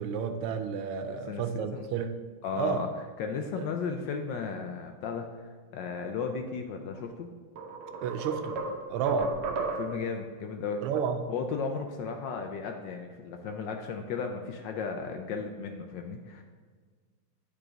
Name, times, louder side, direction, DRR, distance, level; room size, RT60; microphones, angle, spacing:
voice 1, 0.0-2.2 2.6-2.9 3.6-3.7 8.0-8.6 8.9-9.3 10.8-11.3, right 6 dB, 85° right, 7 dB, 1.5 m, -31 dB
voice 2, 1.1-1.9 2.4-2.9 3.2-7.3 9.7-10.8 11.3-16.4, left 5 dB, 75° left, 4 dB, 1.1 m, -35 dB
sound 1, 7.0-7.1 7.6-10.1, right 3 dB, 65° right, 1.0 m, -34 dB
9.9 x 3.6 x 3.8 m, 1.5 s
omnidirectional pair, 2.4 m